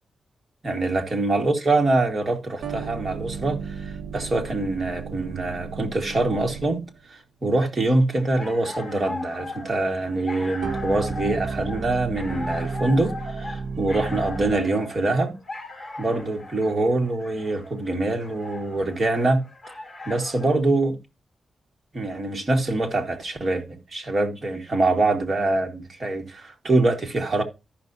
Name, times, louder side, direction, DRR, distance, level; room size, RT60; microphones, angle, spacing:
voice 1, 0.6-6.8 7.1-15.3 16.0-19.4 20.0-21.0 21.9-27.4, right 2 dB, 35° right, 1.8 m, -24 dB
sound 1, 2.6-7.1 10.6-14.8, right 5 dB, 70° right, 0.5 m, -33 dB
sound 2, 8.2-20.6, left 2 dB, 25° left, 2.8 m, -38 dB
14.0 x 5.8 x 2.7 m
wide cardioid pair, 140°, 0 cm